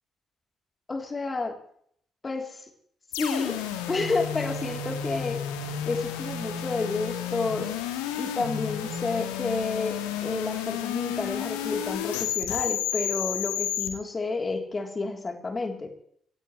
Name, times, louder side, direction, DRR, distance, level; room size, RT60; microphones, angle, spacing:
voice 1, 0.9-1.6 2.2-2.7 3.2-3.6 3.9-5.4 5.9-7.8 8.2-15.9, left 3 dB, 30° left, 3 dB, 3.6 m, -30 dB
sound 1, 3.1-13.9, left 9 dB, 75° left, 1.7 m, -32 dB
25.0 x 16.5 x 3.3 m, 0.63 s
figure-of-eight pair, 40°, 0 cm